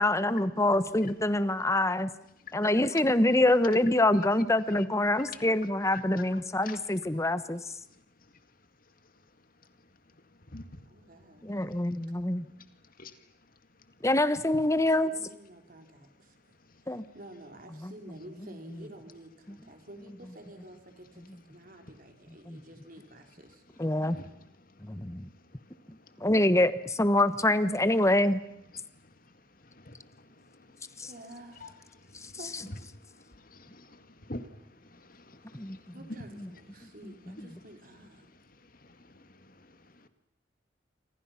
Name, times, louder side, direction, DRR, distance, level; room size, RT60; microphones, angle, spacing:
voice 1, 0.0-2.1 2.5-7.6 11.4-12.5 14.0-15.1 16.9-17.0 17.8-17.9 19.5-19.6 22.5-22.6 23.8-24.2 24.8-25.3 26.2-28.4 31.0-31.1 35.5-35.8 37.0-37.1, left 1 dB, 15° left, 13 dB, 1.1 m, -25 dB
voice 2, 10.9-11.5 14.7-16.4 16.8-23.6 23.9-24.0 31.0-31.9 32.4-32.6 35.9-38.3, right 1 dB, 50° right, 5 dB, 4.0 m, -50 dB
voice 3, 33.4-34.5 34.9-35.8 39.1-39.2 39.6-39.7, left 2 dB, 50° left, 10 dB, 2.1 m, -45 dB
29.0 x 26.0 x 5.9 m, 0.79 s
head